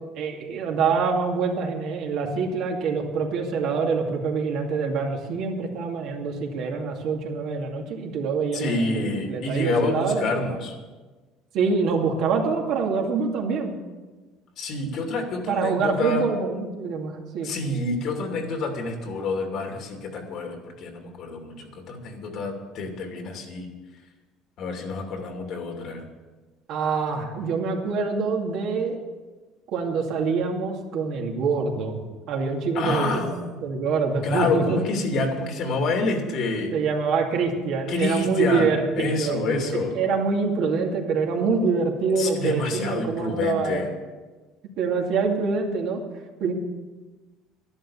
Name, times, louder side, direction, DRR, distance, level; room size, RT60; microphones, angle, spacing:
voice 1, 0.0-10.6 11.5-13.8 15.5-17.5 26.7-29.0 29.7-34.8 36.7-39.6 39.9-43.9 44.8-46.0 46.4-46.5, right 5 dB, 65° right, 1 dB, 2.4 m, -25 dB
voice 2, 8.5-10.7 14.6-16.2 17.4-23.7 24.6-26.0 32.7-33.6 34.2-36.7 37.9-39.9 42.2-43.9, left 3 dB, 55° left, 3 dB, 2.7 m, -28 dB
11.5 x 11.5 x 7.2 m, 1.3 s
cardioid pair, 130°, 0 cm